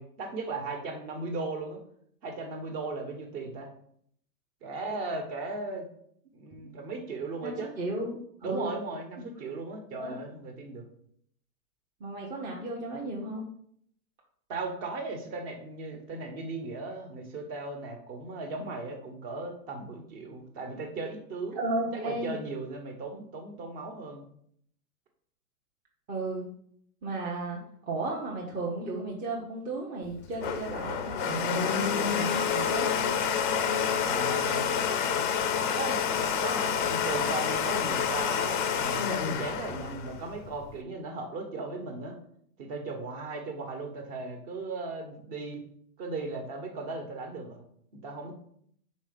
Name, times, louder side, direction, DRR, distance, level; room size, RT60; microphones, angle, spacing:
voice 1, 0.0-1.8 2.2-3.7 4.6-5.9 6.3-7.7 8.4-10.8 14.5-21.6 21.9-24.2 34.0-34.7 35.7-36.0 36.4-42.2 42.6-45.6 46.0-47.6 47.9-48.3, right 3 dB, 35° right, 5 dB, 1.4 m, -37 dB
voice 2, 7.4-8.7 9.2-9.3 10.0-10.2 12.0-13.5 21.5-22.3 26.1-26.5 27.0-27.6 27.9-33.0, right 2 dB, 15° right, -3 dB, 0.8 m, -34 dB
Domestic sounds home sounds, 30.1-40.8, left 7 dB, 35° left, 0.5 m, -28 dB
5.2 x 4.3 x 5.2 m, 0.67 s
hypercardioid pair, 135°, 48 cm